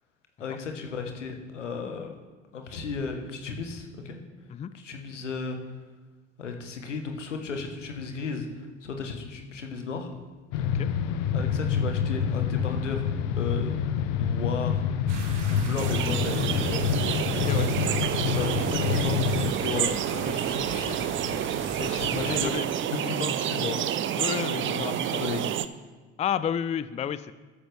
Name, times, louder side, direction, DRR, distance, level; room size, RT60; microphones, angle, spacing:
voice 1, 0.4-2.1 2.5-4.2 4.7-5.6 6.4-10.1 10.6-10.8 11.3-13.0 13.3-14.8 15.5-17.3 18.2-19.3 19.6-21.4 21.9-23.8 24.6-24.8 25.2-25.5, left 4 dB, 80° left, 5 dB, 1.4 m, -35 dB
sound 1, 10.5-19.5, left 7 dB, 55° left, 0.8 m, -27 dB
sound 2, 15.1-22.4, right 3 dB, 75° right, 1.5 m, -39 dB
sound 3, 15.8-25.7, right 10 dB, 35° right, 0.6 m, -29 dB
voice 2, 21.8-22.7 24.1-25.2 26.2-27.3, left 8 dB, 20° left, 15 dB, 0.4 m, -31 dB
13.0 x 10.0 x 3.4 m, 1.3 s
figure-of-eight pair, 60°, 36 cm